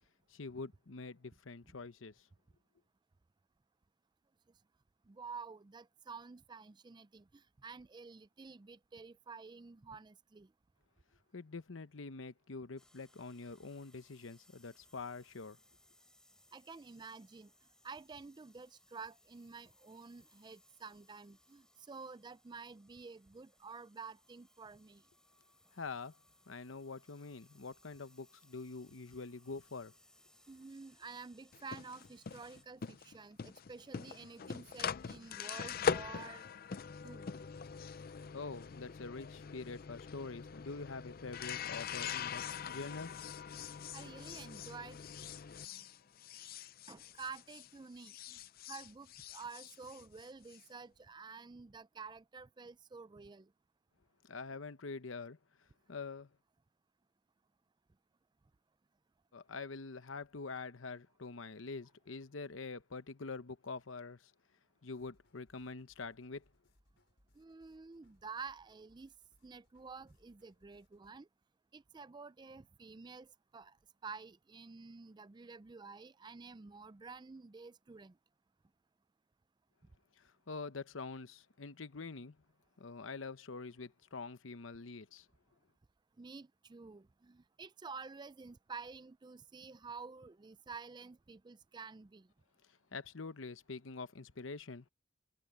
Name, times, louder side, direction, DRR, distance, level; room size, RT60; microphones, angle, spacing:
voice 1, 0.3-2.1 11.3-15.6 25.7-26.2 26.5-29.9 38.3-43.1 54.2-55.4 55.9-56.3 59.3-64.3 64.8-66.4 80.2-82.4 82.8-85.3 92.9-94.9, left 4 dB, 85° left, 0.9 m, -45 dB
voice 2, 5.1-10.5 16.5-17.5 17.8-25.0 30.5-36.4 37.0-37.3 43.9-45.0 45.5-45.9 46.9-48.4 48.7-53.5 67.4-69.1 69.4-71.3 71.7-73.8 74.0-78.1 86.2-92.3, right 4 dB, 20° right, 0.4 m, -50 dB
sound 1, 12.8-32.6, left 1 dB, 5° left, 3.1 m, -68 dB
sound 2, 31.5-47.7 48.0-50.6, left 7 dB, 50° left, 0.5 m, -42 dB
sound 3, 64.9-71.1, left 1 dB, 70° left, 5.8 m, -73 dB
head